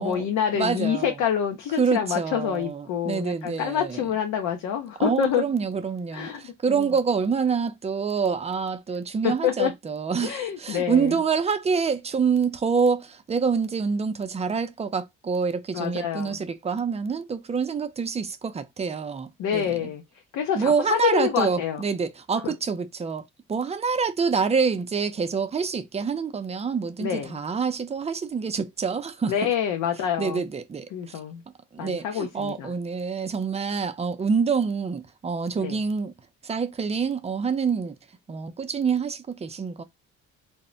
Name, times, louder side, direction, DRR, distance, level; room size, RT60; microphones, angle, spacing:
voice 1, 0.0-5.4 6.1-6.4 6.7-6.9 9.2-9.7 10.2-11.2 15.7-16.4 19.4-20.0 20.3-21.8 22.4-22.5 27.0-27.3 29.3-30.4 30.9-31.4 31.8-32.7 35.6-35.8, left 9 dB, 85° left, 0.6 m, -27 dB
voice 2, 0.5-1.1 1.8-4.0 5.0-19.9 20.5-29.3 30.2-30.9 31.7-36.1 36.4-38.0 38.3-39.8, right 5 dB, 20° right, 0.4 m, -26 dB
2.1 x 2.0 x 3.6 m
cardioid pair, 90°, 30 cm